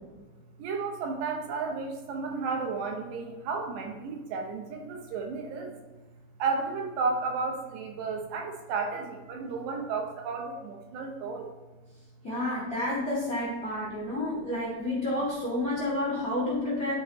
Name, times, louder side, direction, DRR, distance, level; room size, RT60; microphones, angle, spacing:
voice 1, 0.6-5.8 6.4-11.5, right 4 dB, 80° right, 2 dB, 2.9 m, -33 dB
voice 2, 12.2-16.9, left 1 dB, 35° left, -7 dB, 1.6 m, -30 dB
11.5 x 5.9 x 3.0 m, 1.2 s
omnidirectional pair, 5.2 m